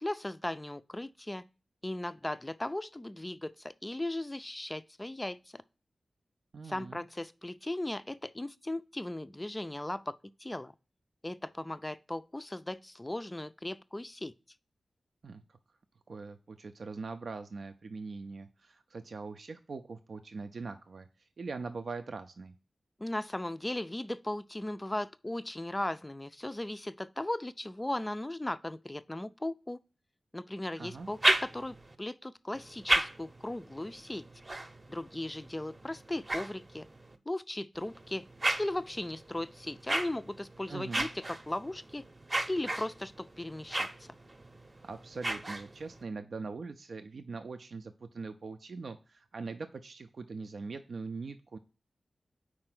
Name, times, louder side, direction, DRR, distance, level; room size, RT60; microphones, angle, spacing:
voice 1, 0.0-1.4 1.8-5.6 6.7-10.7 11.2-14.3 23.0-29.8 30.3-34.2 34.9-36.9 37.3-38.3 38.6-42.0 42.5-44.1, left 1 dB, 20° left, 0.4 m, -37 dB
voice 2, 6.5-7.0 15.2-15.6 16.1-22.5 30.8-31.1 40.7-41.1 44.8-51.6, right 4 dB, 70° right, 0.5 m, -42 dB
sound 1, 30.9-31.9 32.5-37.2 37.7-46.0, right 2 dB, 35° right, 0.7 m, -35 dB
4.8 x 4.4 x 5.9 m
wide cardioid pair, 75°, 0 cm